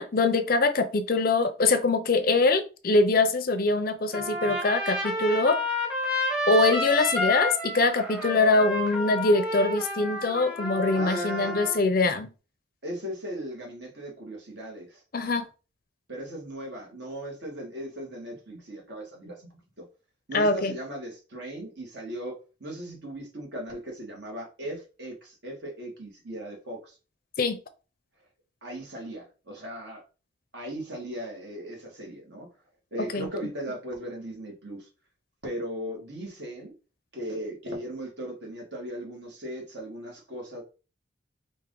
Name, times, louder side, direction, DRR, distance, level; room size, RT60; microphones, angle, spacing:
voice 1, 0.0-5.6 6.5-12.3 15.1-15.5 20.3-20.7 27.4-27.6 33.1-33.3, left 3 dB, 45° left, 10 dB, 0.5 m, -23 dB
Trumpet, 4.1-11.8, left 1 dB, 5° right, 1.0 m, -30 dB
voice 2, 10.9-11.6 12.8-15.0 16.1-19.5 19.8-19.9 20.3-27.0 28.6-30.0 30.5-32.5 32.9-34.9 35.4-36.7 37.1-40.6, right 1 dB, 60° right, 0 dB, 1.7 m, -37 dB
4.7 x 2.6 x 3.8 m, 0.33 s
head